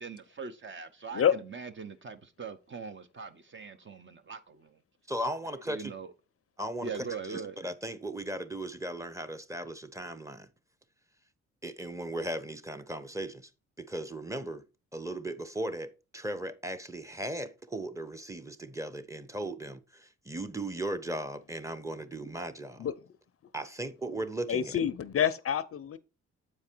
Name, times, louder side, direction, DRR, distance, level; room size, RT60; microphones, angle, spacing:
voice 1, 0.0-4.8 5.7-6.1 6.8-7.6, right 5 dB, 35° right, 0.9 m, -41 dB
voice 2, 5.1-5.9 6.6-10.5 11.6-13.5 13.8-14.6 14.9-22.9 23.5-24.7, right 1 dB, 10° right, 0.9 m, -37 dB
voice 3, 24.5-26.0, left 8 dB, 45° left, 0.6 m, -27 dB
7.6 x 4.8 x 4.5 m
cardioid pair, 70°, 31 cm